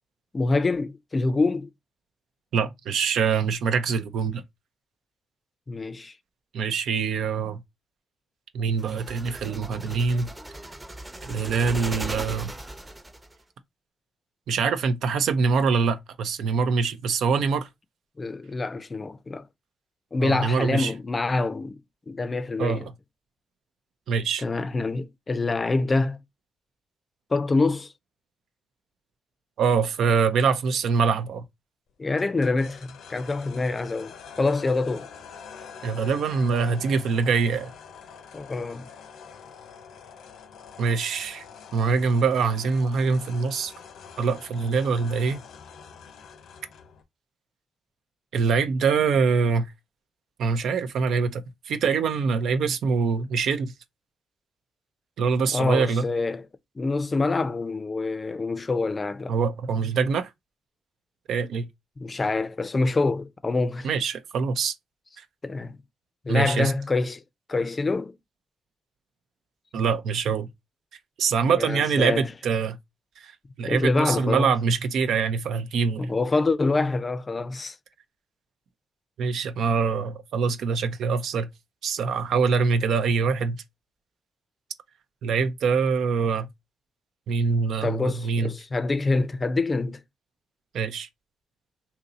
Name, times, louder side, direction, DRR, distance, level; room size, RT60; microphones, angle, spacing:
voice 1, 0.3-1.7 5.7-6.1 18.2-19.5 20.1-22.9 24.4-26.2 27.3-27.9 32.0-35.1 38.3-38.9 55.5-56.4 56.8-59.3 62.0-63.9 65.4-65.8 66.2-67.2 67.5-68.1 71.5-72.3 73.6-74.5 76.0-77.8 87.8-90.0, left 3 dB, 30° left, 0.5 m, -26 dB
voice 2, 2.5-4.4 6.5-7.6 8.5-10.3 11.2-12.5 14.5-17.7 20.2-20.9 22.6-22.9 24.1-24.4 29.6-31.4 35.8-37.7 40.8-41.4 41.7-43.7 44.2-45.4 48.3-49.7 50.4-53.7 55.2-56.0 59.3-60.3 61.3-61.7 63.8-64.7 65.2-65.3 66.3-66.7 69.7-70.5 71.2-72.8 73.2-73.3 73.6-76.1 79.2-81.5 81.8-83.6 85.2-86.5 87.3-88.5 90.7-91.1, right 5 dB, 75° right, 0.5 m, -24 dB
sound 1, 8.8-13.3, right 1 dB, 15° right, 0.7 m, -37 dB
sound 2, 32.2-47.0, left 6 dB, 75° left, 0.6 m, -45 dB
2.8 x 2.6 x 4.0 m
supercardioid pair, 60°, 0 cm